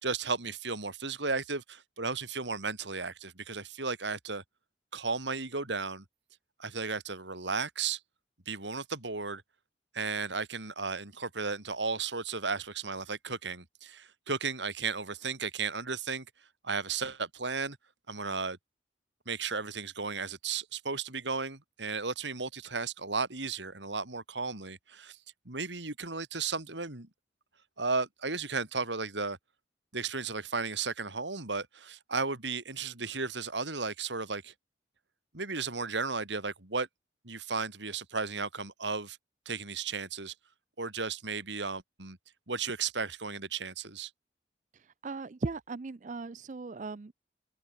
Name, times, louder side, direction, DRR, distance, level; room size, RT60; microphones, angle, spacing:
voice 1, 0.0-4.4 4.9-6.0 6.6-8.0 8.5-9.4 9.9-16.2 16.6-17.8 18.1-18.6 19.2-25.2 25.4-27.1 27.8-29.4 29.9-34.5 35.3-36.9 37.2-39.2 39.4-40.3 40.8-42.2 42.5-44.1, right 4 dB, 80° right, 3.4 m, -34 dB
voice 2, 45.0-47.1, right 3 dB, 40° right, 0.4 m, -37 dB
head